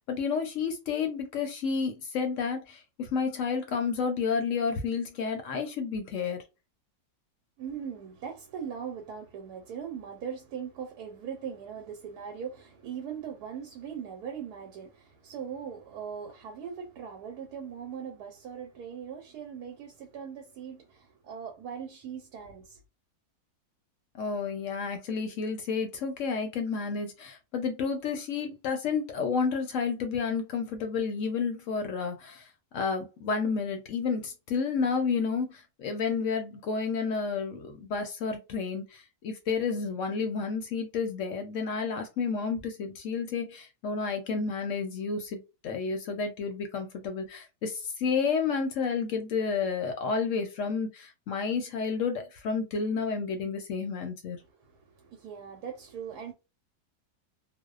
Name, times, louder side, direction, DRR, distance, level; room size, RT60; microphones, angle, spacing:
voice 1, 0.0-6.4 24.1-32.5 32.7-54.4, left 5 dB, 70° left, 0.8 m, -31 dB
voice 2, 7.6-22.8 54.4-56.3, right 7 dB, 80° right, 1.1 m, -40 dB
2.6 x 2.1 x 2.3 m
omnidirectional pair, 1.7 m